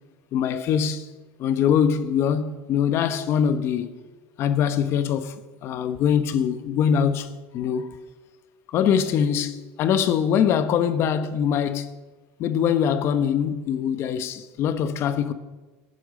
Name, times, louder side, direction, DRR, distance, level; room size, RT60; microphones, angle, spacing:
voice 1, 0.3-1.1 1.4-3.9 4.4-5.3 5.6-8.0 8.7-11.9 12.4-15.3, left 8 dB, 50° left, 1.1 m, -23 dB
15.0 x 9.2 x 6.6 m
supercardioid pair, 135°, 6 cm